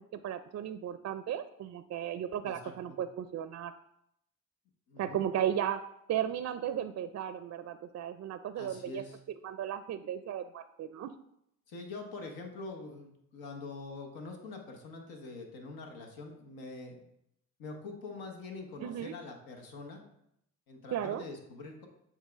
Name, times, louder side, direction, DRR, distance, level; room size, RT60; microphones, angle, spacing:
voice 1, 0.1-3.7 5.0-5.8 6.1-9.0 9.4-11.1 18.8-19.1 20.9-21.2, right 10 dB, 50° right, 11 dB, 0.4 m, -35 dB
voice 2, 2.4-3.0 4.9-5.2 8.6-9.2 11.7-17.0 17.6-20.0 20.7-21.9, left 3 dB, 85° left, 3 dB, 1.2 m, -44 dB
7.4 x 3.6 x 3.5 m, 0.77 s
supercardioid pair, 70°, 35 cm